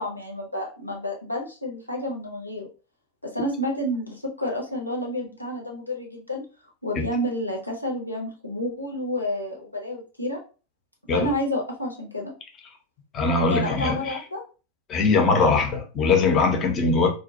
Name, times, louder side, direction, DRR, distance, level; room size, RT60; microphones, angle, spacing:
voice 1, 0.0-2.7 3.3-6.4 6.8-10.4 11.1-12.3 13.5-14.4, equal, 85° left, 0.7 m, -30 dB
voice 2, 13.1-14.2 14.9-17.1, left 4 dB, 30° left, 0.6 m, -21 dB
2.2 x 2.1 x 2.7 m
figure-of-eight pair, 90°, 0 cm